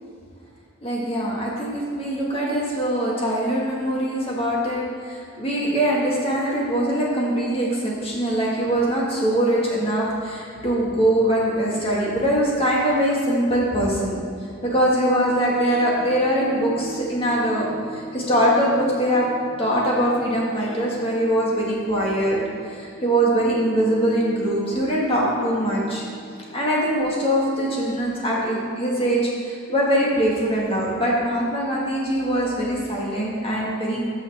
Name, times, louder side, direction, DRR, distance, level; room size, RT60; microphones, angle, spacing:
voice 1, 0.8-14.2 14.6-19.3 19.6-22.4 22.7-26.0 26.5-34.0, right 1 dB, 25° left, -4 dB, 1.9 m, -22 dB
sound 1, 15.0-29.4, right 1 dB, 5° left, 1.9 m, -40 dB
15.0 x 5.6 x 3.6 m, 2.2 s
head